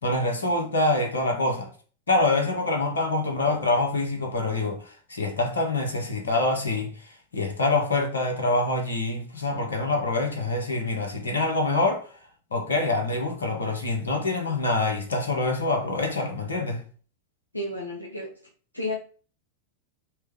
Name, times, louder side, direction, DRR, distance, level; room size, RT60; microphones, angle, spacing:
voice 1, 0.0-1.7 2.1-4.8 5.1-6.9 7.3-12.1 12.5-16.8, left 2 dB, 70° left, 1.9 m, -25 dB
voice 2, 17.5-18.3 18.7-19.0, left 1 dB, 85° left, 1.5 m, -31 dB
5.8 x 3.4 x 5.0 m
figure-of-eight pair, 90°, 0 cm